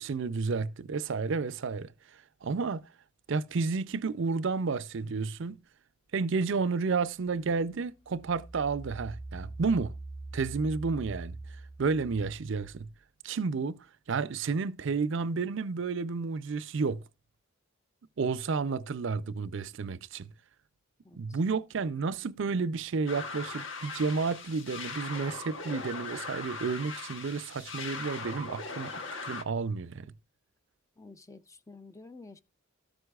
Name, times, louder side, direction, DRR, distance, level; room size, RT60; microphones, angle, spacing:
voice 1, 0.0-1.9 2.4-2.9 3.3-5.6 6.1-9.9 10.3-11.4 11.8-12.9 13.2-17.0 18.2-20.3 21.1-28.9 29.2-30.1, right 4 dB, 55° right, 0.5 m, -31 dB
Engine, 7.1-13.0, right 2 dB, 85° left, 3.5 m, -44 dB
voice 2, 21.0-21.4 31.0-32.4, left 3 dB, 15° left, 0.4 m, -50 dB
sound 1, 23.1-29.4, left 4 dB, 60° left, 1.1 m, -40 dB
13.0 x 7.9 x 2.3 m
head